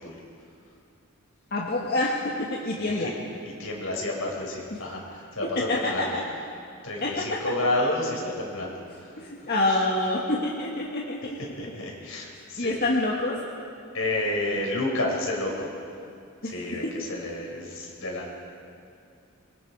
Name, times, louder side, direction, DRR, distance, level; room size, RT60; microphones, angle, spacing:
voice 1, 1.5-3.1 4.7-4.8 5.6-6.2 7.0-7.4 9.2-11.4 12.6-13.4 16.4-17.0, left 2 dB, 50° left, -3 dB, 1.9 m, -27 dB
voice 2, 2.8-3.1 3.6-6.2 6.8-9.2 11.6-12.8 13.9-15.7 16.4-18.3, left 1 dB, 80° left, -2 dB, 5.4 m, -30 dB
26.5 x 22.5 x 4.9 m, 2.4 s
head